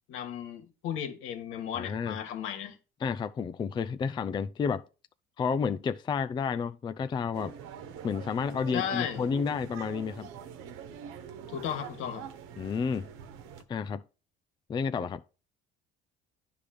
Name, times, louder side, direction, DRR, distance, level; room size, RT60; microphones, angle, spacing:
voice 1, 0.1-2.8 8.7-9.2 11.5-12.2, left 9 dB, 75° left, 1.8 m, -35 dB
voice 2, 1.7-2.2 3.0-4.8 5.4-7.5 8.0-10.3 12.6-13.1 13.7-14.0 14.7-15.2, left 6 dB, 20° left, 0.4 m, -31 dB
sound 1, 7.3-13.6, right 8 dB, 80° right, 1.1 m, -45 dB
10.0 x 3.5 x 6.5 m
cardioid pair, 130°, 21 cm